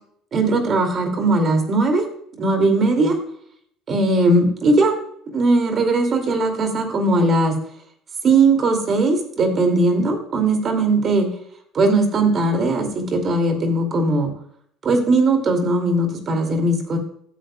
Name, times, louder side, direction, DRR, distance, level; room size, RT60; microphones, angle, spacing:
voice 1, 0.3-2.0 2.4-3.1 3.9-5.0 5.3-7.5 8.2-11.3 11.7-14.3 14.8-17.0, right 2 dB, 35° right, 5 dB, 2.3 m, -19 dB
14.5 x 9.3 x 2.2 m, 0.65 s
cardioid pair, 135°, 0 cm